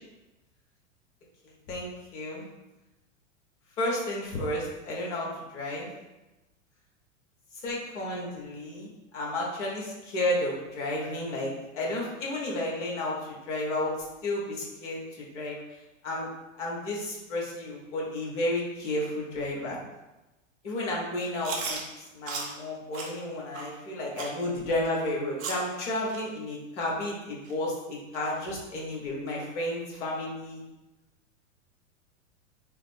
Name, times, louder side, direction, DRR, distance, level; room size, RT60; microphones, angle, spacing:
voice 1, 1.7-2.4 3.8-5.9 7.6-8.9 9.1-13.9 14.2-15.0 15.3-15.6 16.0-16.3 16.6-19.8 20.6-21.8 22.1-30.6, left 1 dB, 60° left, -3 dB, 1.5 m, -32 dB
Chewing mastication, 21.4-21.8 22.3-22.5 22.9-23.1 23.5-23.7 24.2-24.3 24.8-24.9 25.4-25.7 26.1-26.2 26.8-26.9 27.4-27.5 28.1-28.2, right 4 dB, 75° right, 1.0 m, -35 dB
5.5 x 2.1 x 3.4 m, 1.0 s
hypercardioid pair, 95°, 40 cm